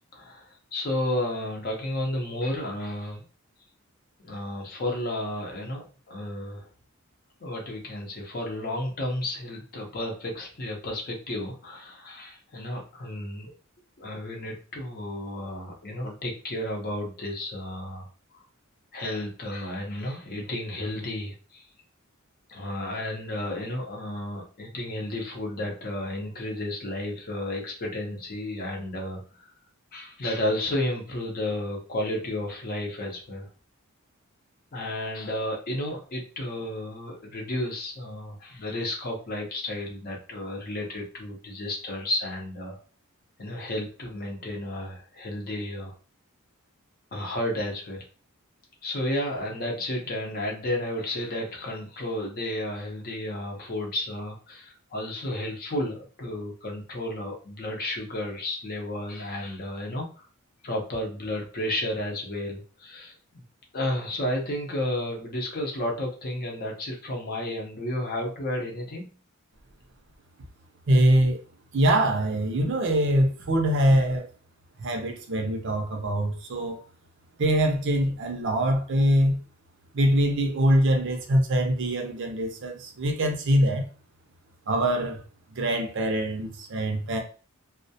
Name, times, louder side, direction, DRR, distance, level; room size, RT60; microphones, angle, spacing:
voice 1, 0.1-3.2 4.2-6.7 7.4-13.5 14.0-18.4 18.9-21.7 22.5-29.5 29.9-33.5 34.7-42.8 43.4-45.9 47.1-48.0 48.8-60.2 60.6-63.4 63.7-69.1, left 1 dB, 45° left, 0.6 m, -32 dB
voice 2, 70.9-71.4 71.7-74.3 74.8-76.8 77.4-79.4 79.9-83.9 84.7-85.2 85.5-87.2, right 1 dB, 55° right, 0.5 m, -23 dB
2.2 x 2.1 x 2.6 m
head